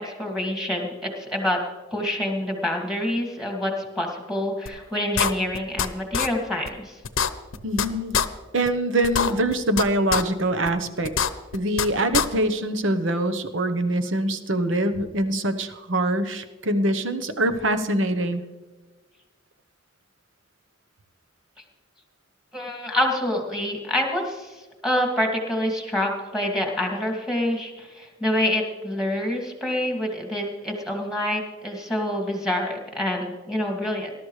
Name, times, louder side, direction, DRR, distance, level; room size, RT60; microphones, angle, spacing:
voice 1, 0.0-1.6 1.9-7.0 22.5-34.1, left 1 dB, 5° right, 1 dB, 2.3 m, -27 dB
sound 1, 4.7-4.8 5.2-5.9 6.1-6.3 6.7-6.8 7.0-7.9 8.1-8.3 8.7-8.8 9.0-9.8 10.1-10.2 10.7-10.8 11.0-11.9 12.1-12.3, left 7 dB, 80° left, 0.8 m, -23 dB
voice 2, 7.6-8.2 8.5-11.1 11.5-18.4, right 1 dB, 70° right, 9 dB, 1.0 m, -24 dB
20.0 x 12.5 x 3.3 m, 1.2 s
head